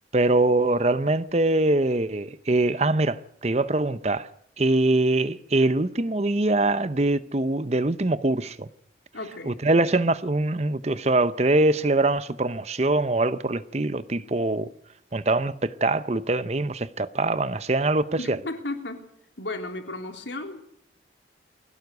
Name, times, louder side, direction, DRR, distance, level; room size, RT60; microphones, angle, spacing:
voice 1, 0.1-4.3 4.6-8.7 9.5-14.7 15.1-18.4, right 2 dB, 35° right, 0.8 m, -23 dB
voice 2, 9.1-9.6 18.2-19.1 19.4-20.6, left 2 dB, 80° left, 3.6 m, -34 dB
21.0 x 17.0 x 8.0 m
head